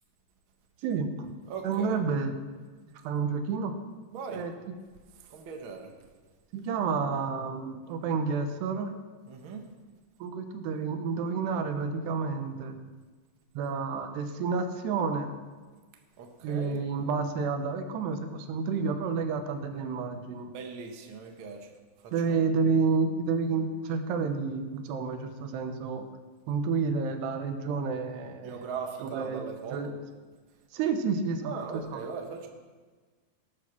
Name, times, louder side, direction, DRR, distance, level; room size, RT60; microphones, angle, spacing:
voice 1, 0.8-1.4 1.6-2.4 2.9-3.7 4.3-4.8 6.5-8.9 10.2-12.8 13.6-15.3 16.4-20.5 22.1-26.1 26.5-28.7 29.0-29.4 29.7-29.9 30.7-32.0, right 5 dB, 85° right, 7 dB, 3.1 m, -30 dB
voice 2, 1.5-2.0 4.1-4.4 5.3-5.9 9.3-9.6 16.2-16.8 20.5-21.7 22.0-22.5 28.4-30.0 31.4-32.5, right 5 dB, 70° right, 3 dB, 1.2 m, -39 dB
19.0 x 8.3 x 6.0 m, 1.4 s
omnidirectional pair, 4.7 m